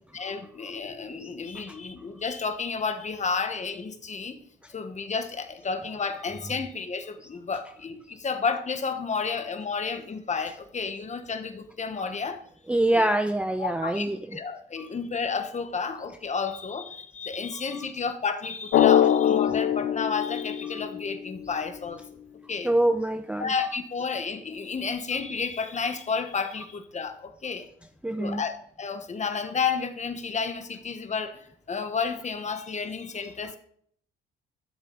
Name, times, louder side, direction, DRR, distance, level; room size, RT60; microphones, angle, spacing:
voice 1, 0.1-4.4 4.7-12.4 12.9-13.1 13.6-22.0 22.5-22.7 23.4-27.7 28.2-33.6, left 5 dB, 35° left, 8 dB, 1.2 m, -31 dB
voice 2, 12.7-14.2 14.8-14.9 17.7-17.8 22.6-23.5 28.0-28.4, right 1 dB, 5° right, 8 dB, 0.5 m, -25 dB
Drum, 18.7-21.3, left 10 dB, 65° left, 0.5 m, -22 dB
12.0 x 7.0 x 3.9 m, 0.63 s
cardioid pair, 90°, 20 cm